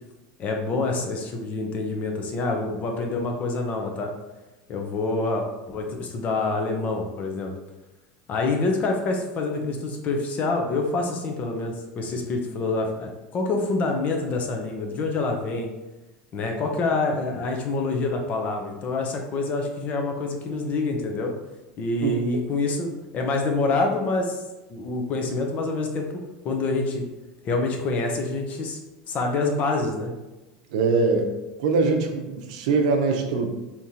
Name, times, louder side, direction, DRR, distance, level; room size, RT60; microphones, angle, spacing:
voice 1, 0.4-4.1 4.7-7.5 8.3-15.7 16.3-21.3 21.8-24.4 24.7-26.1 26.4-27.0 27.4-28.8 29.1-30.1, left 3 dB, 40° left, 2 dB, 0.7 m, -26 dB
voice 2, 30.7-31.3 31.6-33.5, right 4 dB, 75° right, 4 dB, 0.6 m, -22 dB
3.6 x 2.9 x 2.8 m, 1.1 s
supercardioid pair, 125°, 4 cm